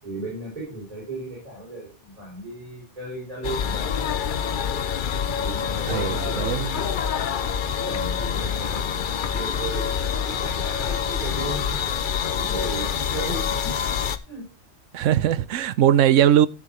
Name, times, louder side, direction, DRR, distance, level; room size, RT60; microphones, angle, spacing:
voice 1, 0.0-4.2 5.3-7.0 7.5-13.7 14.3-14.4, right 2 dB, 30° right, 6.5 m, -36 dB
sound 1, 3.4-14.2, left 7 dB, 50° left, 0.7 m, -26 dB
Laughter / Drum, 5.8-11.8, equal, 5° left, 1.6 m, -44 dB
voice 2, 5.9-6.8 14.9-16.5, right 10 dB, 85° right, 1.0 m, -20 dB
13.5 x 7.4 x 3.0 m
omnidirectional pair, 1.3 m